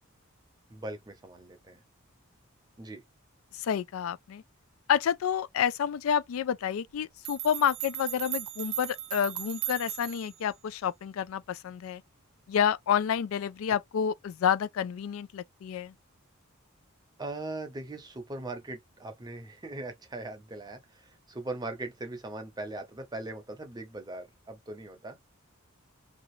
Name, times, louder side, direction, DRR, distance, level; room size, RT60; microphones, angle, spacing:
voice 1, 0.7-1.8 2.8-3.0 17.2-25.2, right 2 dB, 20° right, 0.7 m, -40 dB
voice 2, 3.5-4.4 4.9-12.0 12.5-15.9, left 8 dB, 75° left, 0.3 m, -29 dB
sound 1, 6.9-7.0 7.2-10.4, right 13 dB, 65° right, 0.5 m, -37 dB
2.8 x 2.4 x 3.0 m
head